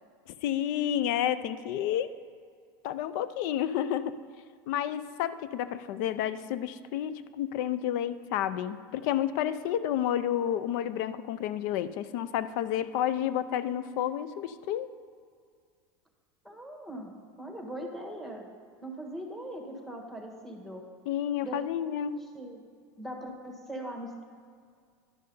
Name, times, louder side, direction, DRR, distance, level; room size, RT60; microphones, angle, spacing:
voice 1, 0.4-2.1 2.8-4.1 4.7-14.9 21.1-22.2, left 10 dB, 65° left, 14 dB, 0.5 m, -30 dB
voice 2, 16.4-17.1 17.4-18.5 18.8-20.8 21.4-21.6 22.2-22.6 23.0-24.2, right 1 dB, ahead, 1 dB, 1.5 m, -40 dB
11.5 x 5.4 x 5.4 m, 2.1 s
supercardioid pair, 115°, 11 cm